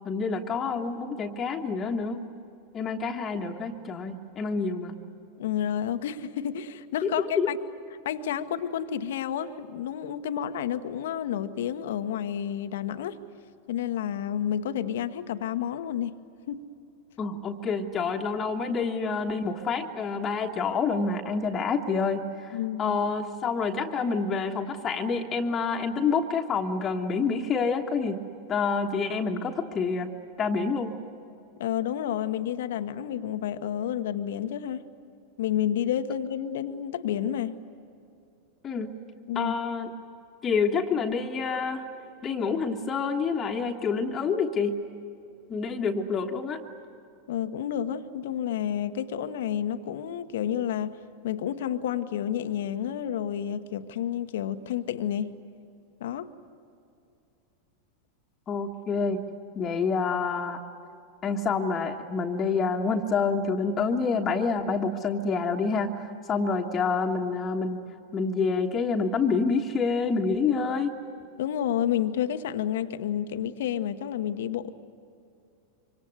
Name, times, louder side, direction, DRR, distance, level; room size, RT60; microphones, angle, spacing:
voice 1, 0.0-2.3 2.7-5.0 7.0-7.1 7.4-7.5 17.2-30.1 30.4-31.0 38.6-38.9 39.3-39.9 40.4-41.9 42.2-44.8 45.5-46.6 58.5-59.2 59.6-60.6 61.2-67.8 68.1-70.9, left 4 dB, 25° left, 2 dB, 1.4 m, -27 dB
voice 2, 5.4-7.6 8.0-13.2 13.7-16.2 16.5-16.6 22.5-23.0 31.6-34.9 35.4-37.6 39.3-39.5 47.3-51.0 51.2-55.3 56.0-56.3 71.4-74.7, left 10 dB, 55° left, 10 dB, 1.0 m, -30 dB
26.0 x 25.5 x 8.1 m, 2.6 s
figure-of-eight pair, 90°, 0 cm